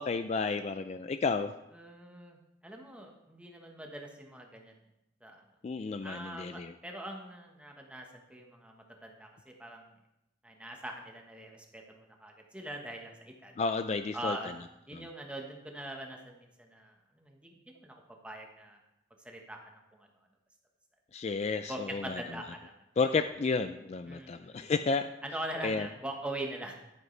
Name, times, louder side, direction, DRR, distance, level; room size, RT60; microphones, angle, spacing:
voice 1, 0.0-1.5 5.6-6.7 13.6-14.4 14.9-15.0 21.1-22.2 23.0-25.1 25.6-25.9, left 4 dB, 35° left, 9 dB, 0.3 m, -31 dB
voice 2, 1.7-4.8 5.2-5.4 6.0-9.9 10.4-13.5 14.1-14.5 14.9-17.9 18.2-18.8 19.2-19.6 19.9-20.1 21.7-22.7 24.1-24.7 25.2-26.8, right 1 dB, 5° right, 1 dB, 1.2 m, -42 dB
11.0 x 9.4 x 3.2 m, 0.89 s
head